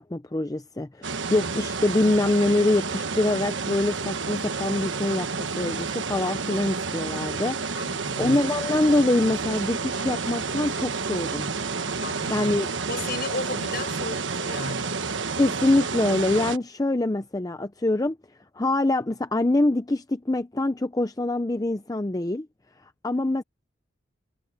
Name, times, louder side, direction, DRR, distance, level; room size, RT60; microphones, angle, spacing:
voice 1, 0.0-7.8 8.2-11.5 12.3-12.7 15.4-18.2 18.5-22.5 23.0-23.4, left 2 dB, 20° left, 0.6 m, -24 dB
sound 1, 1.0-16.6, right 4 dB, 70° right, 1.3 m, -30 dB
voice 2, 7.7-8.4 11.9-12.6 12.9-15.0, left 3 dB, 50° left, 6.8 m, -34 dB
head